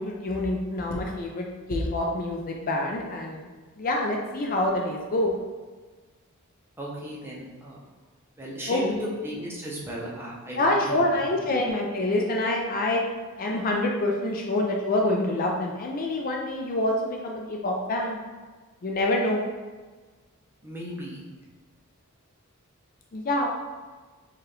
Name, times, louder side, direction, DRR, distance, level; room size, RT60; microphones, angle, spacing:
voice 1, 0.0-3.5 3.8-5.3 8.7-8.8 10.5-13.0 13.4-18.2 18.8-19.4 23.1-23.5, left 1 dB, 40° left, 0 dB, 0.4 m, -26 dB
voice 2, 6.8-7.8 8.4-11.1 11.4-11.5 20.6-21.2, equal, 10° right, -5 dB, 0.7 m, -35 dB
4.8 x 2.4 x 3.0 m, 1.4 s
head